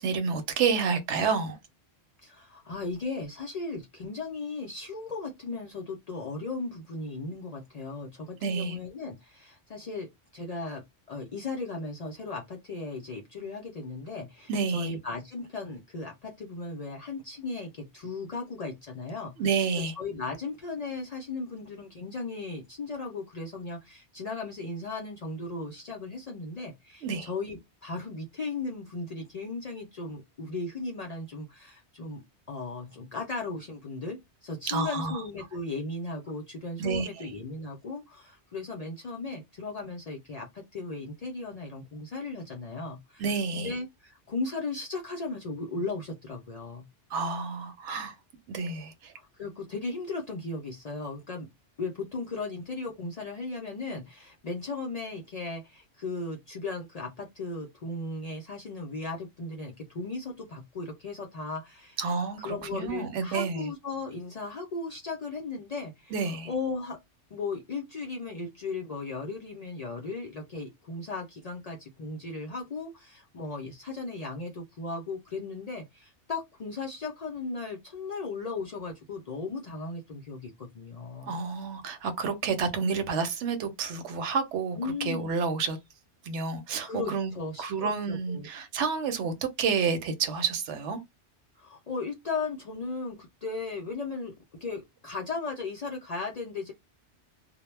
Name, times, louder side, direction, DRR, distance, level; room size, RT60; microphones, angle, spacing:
voice 1, 0.0-1.6 8.4-8.8 14.5-14.9 19.4-19.9 27.0-27.3 34.7-35.2 36.8-37.3 43.2-43.8 47.1-48.1 48.5-49.1 62.0-63.7 66.1-66.5 81.2-85.8 86.2-87.3 87.6-91.0, right 5 dB, 85° right, 0.9 m, -29 dB
voice 2, 2.2-10.1 10.3-19.3 19.8-43.3 43.5-46.9 49.4-51.5 51.8-62.0 62.4-66.1 66.5-67.0 67.3-81.3 84.8-85.4 86.8-88.5 91.6-94.3 94.6-96.7, left 3 dB, 60° left, 0.4 m, -36 dB
2.1 x 2.0 x 3.1 m
omnidirectional pair, 1.2 m